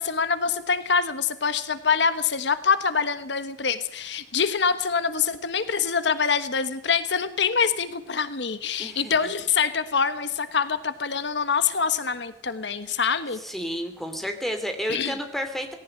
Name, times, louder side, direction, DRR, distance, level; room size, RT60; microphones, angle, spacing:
voice 1, 0.0-13.4 14.9-15.1, left 6 dB, 70° left, 12 dB, 1.3 m, -25 dB
voice 2, 8.8-9.1 13.4-15.7, equal, ahead, 6 dB, 2.9 m, -31 dB
19.0 x 17.0 x 8.9 m, 0.71 s
head